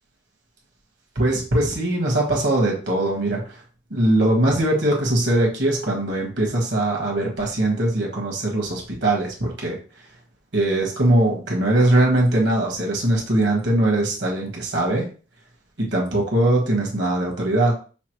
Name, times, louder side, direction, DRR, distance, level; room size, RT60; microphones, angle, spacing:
voice 1, 1.1-3.4 3.9-9.8 10.5-15.1 15.8-17.8, right 1 dB, 75° right, 0 dB, 1.4 m, -21 dB
5.8 x 2.0 x 3.0 m, 0.37 s
head